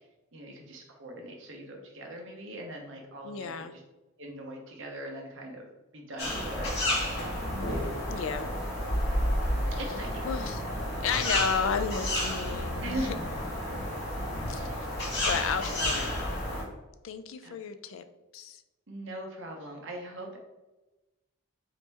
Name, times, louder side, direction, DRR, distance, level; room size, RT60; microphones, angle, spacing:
voice 1, 0.3-3.8 4.2-7.0 9.7-10.3 12.8-13.5 14.4-14.8 17.4-17.6 18.9-20.4, right 1 dB, 65° right, 1 dB, 0.8 m, -41 dB
voice 2, 3.2-3.7 8.1-8.5 10.2-10.6 11.0-13.1 14.5-14.9 15.2-16.4 17.0-18.0 18.3-18.6, left 6 dB, 70° left, 10 dB, 0.3 m, -33 dB
sound 1, 6.2-16.6, left 1 dB, 55° left, 1.3 m, -31 dB
4.1 x 2.8 x 3.4 m, 1.1 s
head